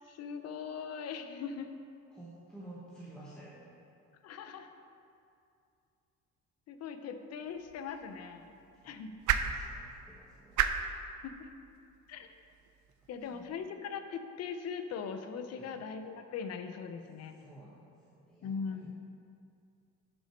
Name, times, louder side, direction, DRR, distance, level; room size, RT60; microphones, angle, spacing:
voice 1, 0.0-1.7 4.2-4.8 6.7-8.5 8.8-9.1 11.2-11.5 12.1-12.3 13.1-17.3 18.4-18.9, left 6 dB, 60° left, 8 dB, 0.7 m, -40 dB
voice 2, 2.1-3.7 8.5-8.9 9.3-10.6 13.0-13.5 15.5-15.8 17.2-18.9, right 1 dB, 5° left, -9 dB, 1.1 m, -53 dB
sound 1, 7.5-13.7, right 8 dB, 85° right, 0.6 m, -37 dB
10.0 x 6.2 x 4.4 m, 2.5 s
cardioid pair, 160°, 30 cm